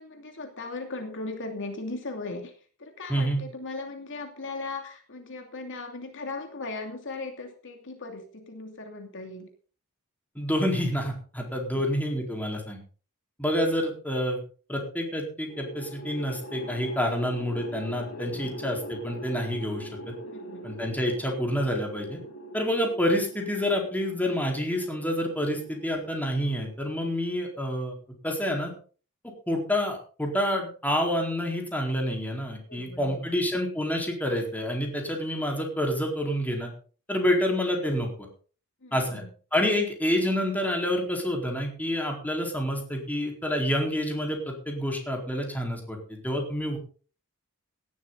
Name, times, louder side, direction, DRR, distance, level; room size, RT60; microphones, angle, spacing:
voice 1, 0.0-2.5 2.8-9.5 11.7-11.9 18.1-18.5 20.3-20.7 32.7-33.4 38.8-39.3, left 3 dB, 60° left, 4 dB, 2.7 m, -38 dB
voice 2, 3.1-3.4 10.3-12.8 13.4-14.4 14.7-20.1 20.6-22.2 22.5-27.9 28.2-28.7 29.5-36.7 37.1-38.1 38.9-39.2 39.5-46.8, equal, 10° left, 1 dB, 4.4 m, -28 dB
sound 1, 15.5-27.8, equal, 75° left, 3.8 m, -42 dB
17.5 x 12.5 x 4.1 m, 0.40 s
head